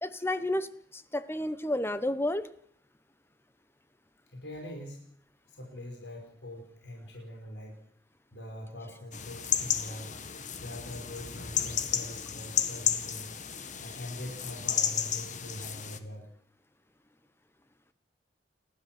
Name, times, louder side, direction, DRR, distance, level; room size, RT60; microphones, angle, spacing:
voice 1, 0.0-2.5, left 1 dB, 15° left, 14 dB, 1.0 m, -31 dB
voice 2, 4.3-5.1 5.6-7.8 8.3-10.1 10.6-13.3 13.8-16.3, left 1 dB, 70° left, 0 dB, 5.7 m, -43 dB
sound 1, 9.1-16.0, left 8 dB, 45° left, 1.7 m, -33 dB
30.0 x 13.0 x 7.8 m, 0.65 s
head